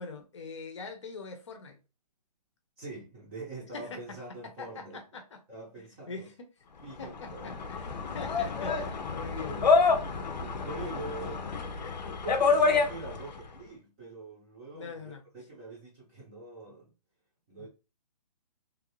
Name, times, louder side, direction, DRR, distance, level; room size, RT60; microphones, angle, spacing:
voice 1, 0.0-1.8 3.7-5.4 5.8-6.5 7.0-10.1 10.8-10.9 11.7-12.0 14.7-15.2 17.6-17.7, left 4 dB, 45° left, 0.7 m, -43 dB
voice 2, 2.8-5.0 5.5-6.3 6.8-7.7 9.4-9.7 10.4-11.5 12.2-16.9 17.5-17.7, right 3 dB, 10° right, 0.7 m, -44 dB
sound 1, 7.0-13.4, left 4 dB, 90° left, 0.7 m, -28 dB
3.2 x 2.5 x 3.0 m
hypercardioid pair, 170°, 21 cm